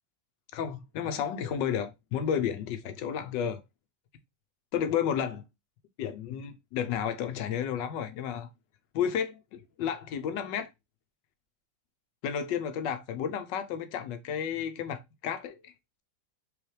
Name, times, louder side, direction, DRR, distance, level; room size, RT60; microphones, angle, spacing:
voice 1, 0.5-3.6 4.7-5.4 6.0-8.5 8.9-10.7 12.2-15.7, left 8 dB, 75° left, 1.2 m, -32 dB
4.8 x 3.0 x 3.1 m
omnidirectional pair, 2.1 m